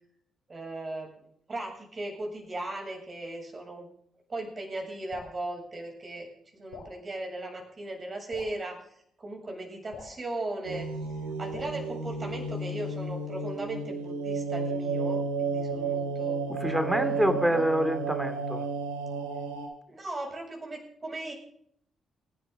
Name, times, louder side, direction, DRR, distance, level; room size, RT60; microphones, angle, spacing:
voice 1, 0.5-1.1 1.5-3.9 4.3-8.8 9.2-10.9 11.4-16.4 16.9-17.6 19.9-21.3, right 2 dB, 35° right, 2 dB, 7.6 m, -37 dB
Drip, 5.1-5.4 6.7-7.0 8.3-8.6 9.9-10.2 11.5-11.8, left 5 dB, 70° left, 5.3 m, -44 dB
sound 1, 10.6-19.7, right 4 dB, 80° right, 2.6 m, -32 dB
voice 2, 16.5-18.7, equal, 10° right, 9 dB, 2.9 m, -27 dB
28.5 x 11.5 x 4.0 m, 0.67 s
figure-of-eight pair, 40°, 0 cm